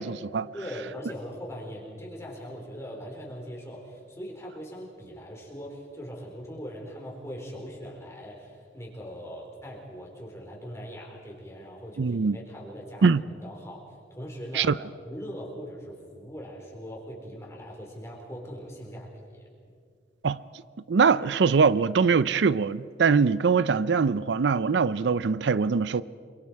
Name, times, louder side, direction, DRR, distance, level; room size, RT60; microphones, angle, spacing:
voice 1, 0.0-0.5 12.0-12.4 13.0-13.2 14.5-14.8 20.2-20.4 20.9-26.0, right 5 dB, 80° right, 0.5 m, -22 dB
voice 2, 0.5-13.1 13.4-14.7 15.0-19.5, equal, 15° left, 4.5 m, -41 dB
28.0 x 23.5 x 4.7 m
head